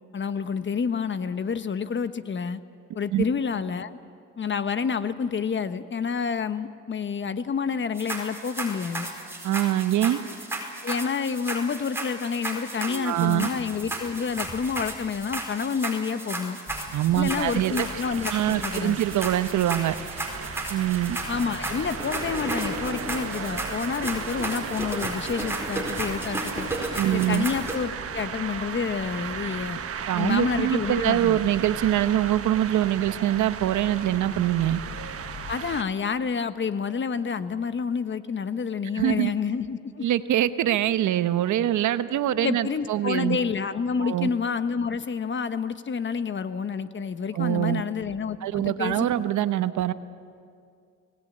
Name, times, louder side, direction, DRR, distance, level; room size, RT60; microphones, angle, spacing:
voice 1, 0.1-2.6 2.9-3.9 4.4-9.1 10.8-16.6 17.1-19.0 21.3-26.7 27.1-29.8 30.2-31.4 35.5-40.0 42.4-49.1, left 6 dB, 40° left, 12 dB, 1.1 m, -29 dB
sound 1, 7.9-27.8, right 2 dB, 10° right, 4.7 m, -34 dB
voice 2, 9.4-10.2 12.8-13.5 16.9-17.9 18.3-19.9 20.7-21.2 27.0-27.5 30.1-34.8 38.9-39.3 40.0-43.4 44.0-44.3 47.3-47.8 48.4-49.9, right 12 dB, 75° right, 12 dB, 1.0 m, -24 dB
sound 2, 16.7-35.6, left 3 dB, 5° left, 3.1 m, -45 dB
sound 3, 17.4-35.8, right 7 dB, 50° right, 1.2 m, -36 dB
24.5 x 18.5 x 8.7 m, 2.3 s
cardioid pair, 90°, 30 cm